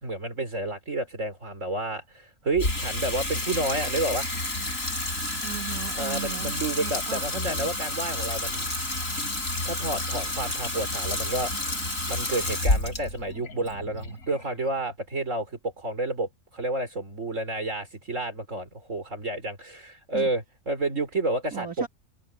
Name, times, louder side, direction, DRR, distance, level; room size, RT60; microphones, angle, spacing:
voice 1, 0.0-4.3 6.0-8.7 9.6-11.7 12.1-21.8, right 2 dB, 55° right, 4.5 m, -30 dB
Water tap faucet / Sink (filling or washing), 2.5-14.9, left 2 dB, 65° left, 6.3 m, -30 dB
voice 2, 5.4-6.5 6.8-7.7 20.1-20.3 21.5-21.9, right 9 dB, 80° right, 2.7 m, -37 dB
omnidirectional pair, 1.5 m